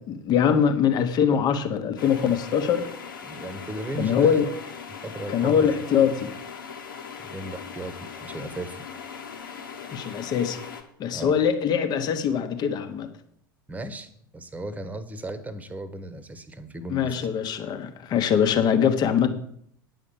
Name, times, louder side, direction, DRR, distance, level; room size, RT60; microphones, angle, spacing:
voice 1, 0.1-2.9 4.0-4.6 5.3-6.3 9.9-10.6 11.0-13.1 16.9-19.3, left 8 dB, 35° left, 1.2 m, -23 dB
sound 1, 2.0-10.8, left 6 dB, 70° left, 1.4 m, -40 dB
voice 2, 3.2-4.5 4.9-5.8 7.2-8.8 11.1-11.4 13.7-17.3, right 1 dB, 15° right, 1.3 m, -36 dB
9.7 x 6.4 x 7.1 m
figure-of-eight pair, 80°, 11 cm